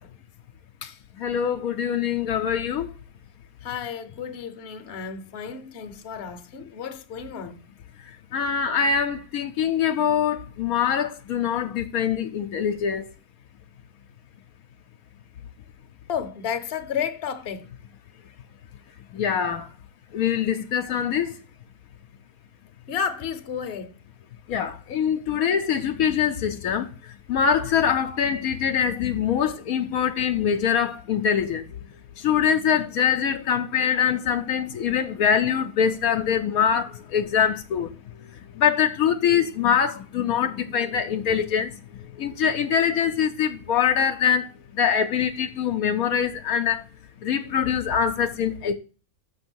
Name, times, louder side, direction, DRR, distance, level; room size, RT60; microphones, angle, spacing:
voice 1, 0.8-2.9 8.3-13.1 19.1-19.7 20.1-21.3 24.5-26.9 27.3-31.8 32.2-37.9 38.5-41.7 42.1-44.5 44.7-46.8 47.2-48.7, left 8 dB, 75° left, 1.1 m, -23 dB
voice 2, 3.6-7.6 16.1-17.7 22.9-23.9, left 7 dB, 50° left, 1.0 m, -32 dB
6.8 x 6.1 x 6.1 m
omnidirectional pair, 1.6 m